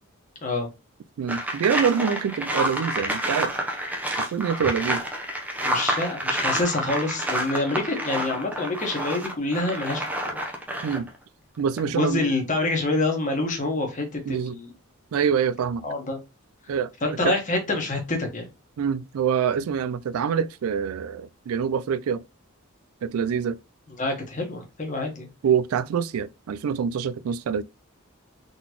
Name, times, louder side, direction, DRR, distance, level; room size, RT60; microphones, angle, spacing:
voice 1, 1.2-3.5 4.2-5.0 10.8-11.1 11.6-12.2 14.3-14.6 15.1-15.9 16.7-17.3 18.8-22.2 23.0-23.6 25.4-27.6, right 7 dB, 75° right, 0.3 m, -25 dB
sound 1, 1.3-11.2 11.6-11.8, right 1 dB, 5° right, 0.7 m, -29 dB
voice 2, 5.6-10.4 11.8-14.7 15.8-16.2 17.0-18.5 24.0-25.3, left 2 dB, 35° left, 1.2 m, -27 dB
3.9 x 3.7 x 2.9 m
head